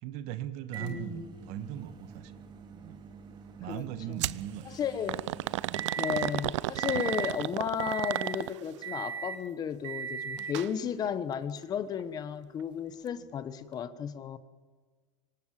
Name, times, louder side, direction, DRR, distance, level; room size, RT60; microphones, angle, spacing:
voice 1, 0.0-2.3 2.7-3.0 3.6-4.7 5.7-5.9 10.4-10.5, right 11 dB, 50° right, 12 dB, 1.8 m, -39 dB
Microwave oven, 0.7-6.4 6.8-7.4 7.8-8.4 8.8-9.4 9.8-10.7 11.6-11.7 13.7-13.8, right 7 dB, 30° right, 2.6 m, -40 dB
voice 2, 0.8-1.4 3.7-4.2 4.6-5.2 6.0-14.4, left 8 dB, 25° left, 13 dB, 1.2 m, -34 dB
sound 1, 4.2-4.4 5.1-8.8 10.4-10.7 11.0-11.1 12.0-12.1, right 16 dB, 85° right, 0.7 m, -33 dB
25.5 x 25.0 x 7.6 m, 1.4 s
supercardioid pair, 155°, 15 cm